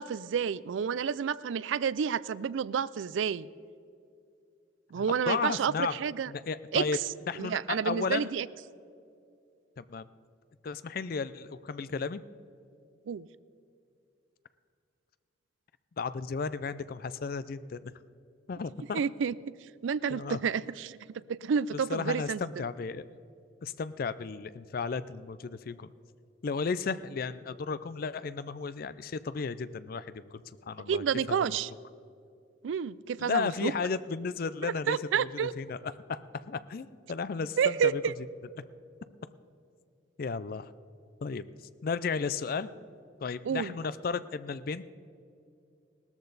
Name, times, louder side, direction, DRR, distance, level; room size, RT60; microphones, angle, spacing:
voice 1, 0.0-3.5 4.9-6.3 6.7-7.0 7.4-8.5 13.1-13.3 18.9-19.3 19.8-21.0 21.3-22.6 30.9-31.7 32.6-33.7 34.6-35.5 37.6-38.1 43.4-43.7, right 7 dB, 80° right, 19 dB, 0.4 m, -30 dB
voice 2, 4.9-5.9 6.3-7.0 7.3-8.3 9.8-10.1 10.6-12.2 16.0-17.9 18.5-19.0 20.1-20.4 21.7-23.1 23.6-25.9 26.4-30.4 30.7-31.6 33.2-35.8 36.1-36.2 36.5-38.0 40.2-40.7 41.2-41.4 41.8-42.7 43.2-44.8, left 5 dB, 50° left, 15 dB, 0.4 m, -34 dB
17.5 x 13.5 x 4.0 m, 2.5 s
head